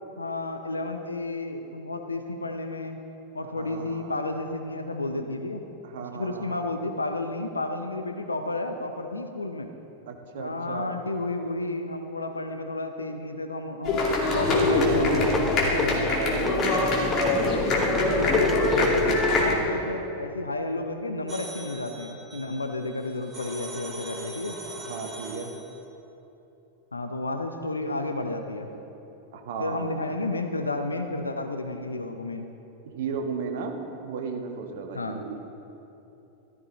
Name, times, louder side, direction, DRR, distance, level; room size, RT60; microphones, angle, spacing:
voice 1, 0.2-3.0 3.3-5.6 6.0-9.7 10.3-16.2 18.1-18.5 18.8-24.6 26.9-28.7 29.6-32.5 34.9-35.2, left 2 dB, 80° left, 6 dB, 0.7 m, -31 dB
voice 2, 3.5-4.2 5.8-6.8 10.1-11.0 14.6-15.3 15.8-19.1 24.8-25.5 29.3-30.0 32.8-35.4, right 5 dB, 55° right, 3 dB, 1.3 m, -35 dB
sound 1, 13.8-19.6, left 2 dB, 35° left, 2.7 m, -23 dB
sound 2, 14.0-19.5, left 3 dB, 10° left, 0.6 m, -34 dB
sound 3, 21.3-25.8, right 1 dB, 20° right, 2.8 m, -40 dB
14.0 x 13.5 x 4.1 m, 2.9 s
figure-of-eight pair, 90°, 0 cm